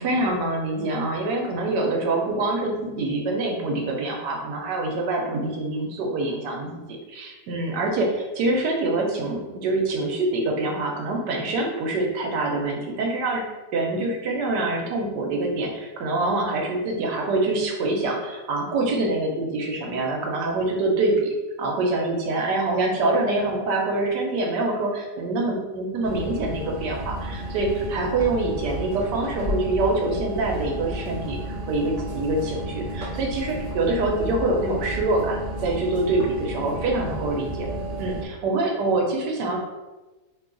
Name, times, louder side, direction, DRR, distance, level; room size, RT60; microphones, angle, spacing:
voice 1, 0.0-6.8 7.1-13.4 13.7-21.3 21.6-37.7 38.0-39.6, right 2 dB, 80° right, 1 dB, 1.2 m, -25 dB
sound 1, 26.0-38.3, equal, 55° right, 0.5 m, -32 dB
3.1 x 2.3 x 3.7 m, 1.1 s
omnidirectional pair, 1.8 m